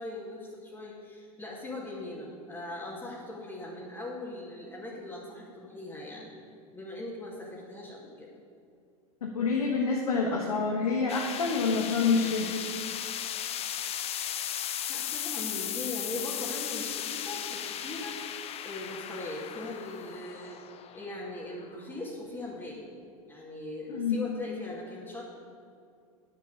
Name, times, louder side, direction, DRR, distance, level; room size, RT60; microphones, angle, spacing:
voice 1, 0.0-6.3 6.7-8.3 14.9-18.2 18.6-20.6 20.9-22.9 23.3-25.2, left 2 dB, 15° left, -7 dB, 2.4 m, -40 dB
voice 2, 9.2-12.6 23.9-24.3, left 4 dB, 80° left, 0 dB, 1.4 m, -27 dB
sound 1, 11.1-22.2, left 10 dB, 35° left, 0.7 m, -36 dB
10.0 x 7.5 x 7.0 m, 2.4 s
hypercardioid pair, 90°, 19 cm